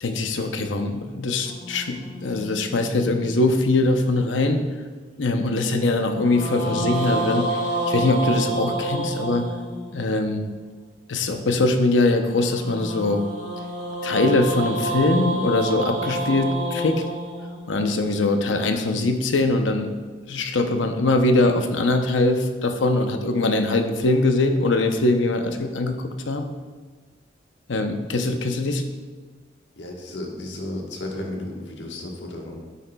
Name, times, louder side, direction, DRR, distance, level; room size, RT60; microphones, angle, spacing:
voice 1, 0.0-4.7 5.2-9.5 9.9-10.5 11.1-13.2 14.0-17.0 17.7-20.0 20.3-26.5 27.7-28.8, left 2 dB, 90° left, 6 dB, 0.7 m, -22 dB
sound 1, 1.4-3.8 6.1-10.2 12.4-18.6, right 2 dB, 85° right, 2.4 m, -29 dB
voice 2, 29.7-32.6, left 1 dB, 75° left, 0 dB, 1.4 m, -33 dB
9.1 x 8.4 x 2.3 m, 1.4 s
head